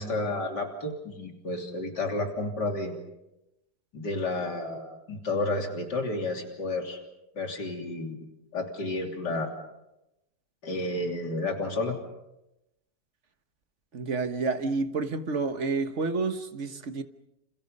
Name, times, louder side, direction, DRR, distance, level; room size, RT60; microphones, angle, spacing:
voice 1, 0.0-3.0 3.9-7.0 7.4-8.3 8.5-9.6 10.6-12.0, left 2 dB, 80° left, 3.7 m, -31 dB
voice 2, 13.9-17.0, right 4 dB, 45° right, 1.5 m, -29 dB
29.0 x 28.0 x 5.4 m
omnidirectional pair, 1.8 m